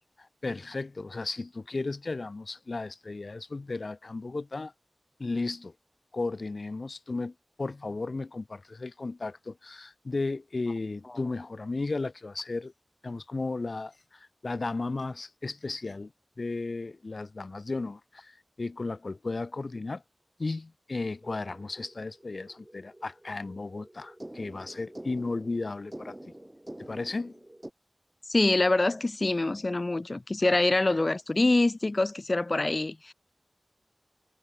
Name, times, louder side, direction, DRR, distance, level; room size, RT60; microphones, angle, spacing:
voice 1, 0.4-4.7 5.2-5.7 6.1-12.7 13.0-16.1 16.4-20.0 20.4-26.2 26.8-27.4, left 3 dB, 75° left, 1.1 m, -34 dB
sound 1, 21.2-27.7, right 1 dB, 20° right, 0.8 m, -47 dB
voice 2, 28.3-33.1, left 2 dB, 55° left, 0.9 m, -25 dB
wide cardioid pair, 40°, 0 cm